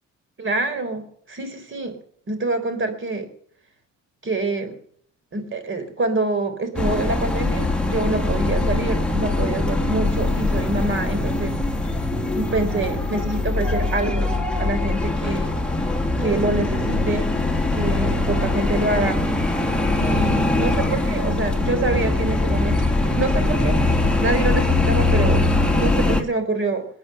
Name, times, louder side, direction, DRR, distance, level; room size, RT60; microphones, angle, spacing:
voice 1, 0.4-2.0 2.3-3.3 4.2-4.7 5.3-11.6 12.3-14.3 14.6-15.6 16.2-17.3 17.7-19.2 20.0-22.9 23.2-25.4 25.7-26.9, right 2 dB, 40° right, 10 dB, 3.8 m, -26 dB
sound 1, 6.8-26.2, left 2 dB, 5° left, 2.5 m, -22 dB
21.5 x 8.8 x 6.8 m, 0.63 s
cardioid pair, 90°, 30 cm